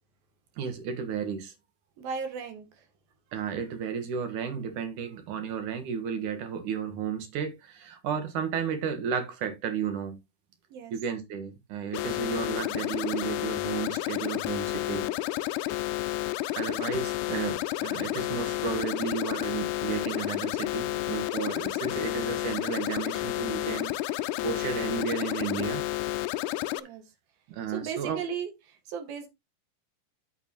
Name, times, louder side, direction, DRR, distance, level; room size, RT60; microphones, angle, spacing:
voice 1, 0.6-1.5 3.3-10.2 10.9-15.1 16.6-23.9 24.4-25.8 27.5-28.2, right 7 dB, 65° right, 2.8 m, -33 dB
voice 2, 2.0-2.9 10.7-10.9 26.7-27.0 27.7-29.3, right 6 dB, 85° right, 3.5 m, -36 dB
sound 1, 11.9-26.8, left 16 dB, 80° left, 1.8 m, -31 dB
9.4 x 8.0 x 2.9 m
omnidirectional pair, 4.1 m